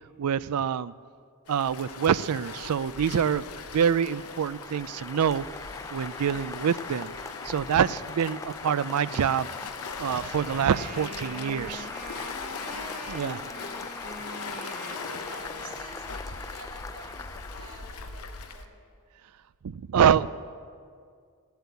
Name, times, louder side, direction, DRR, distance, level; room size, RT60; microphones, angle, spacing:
voice 1, 0.2-0.9 1.5-3.5 3.7-5.4 5.9-7.1 7.4-9.5 10.0-11.9 13.1-13.4 19.6-20.3, right 8 dB, 85° right, 17 dB, 0.4 m, -26 dB
Waves surf, 1.5-18.6, left 5 dB, 75° left, 0.8 m, -41 dB
Applause, 3.5-18.0, left 3 dB, 15° left, 0.3 m, -42 dB
Wind instrument woodwind instrument, 10.2-16.1, right 2 dB, 35° right, 1.0 m, -43 dB
voice 2, 14.0-18.9, right 2 dB, 60° right, -6 dB, 2.5 m, -51 dB
17.0 x 8.1 x 8.2 m, 2.2 s
head